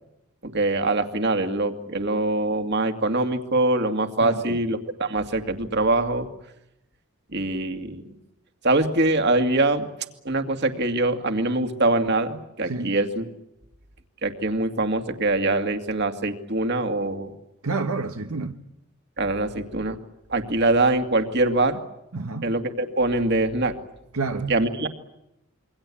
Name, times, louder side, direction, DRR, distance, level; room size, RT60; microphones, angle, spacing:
voice 1, 0.4-6.3 7.3-8.0 8.6-9.9 10.2-13.2 14.2-17.3 19.2-20.0 20.3-21.8 22.4-23.8 24.5-24.9, right 2 dB, 50° right, 2.4 m, -23 dB
voice 2, 4.2-4.6 12.7-13.0 17.6-18.6 22.1-22.5 24.1-24.5, right 3 dB, 75° right, 1.3 m, -29 dB
27.5 x 23.5 x 8.6 m
head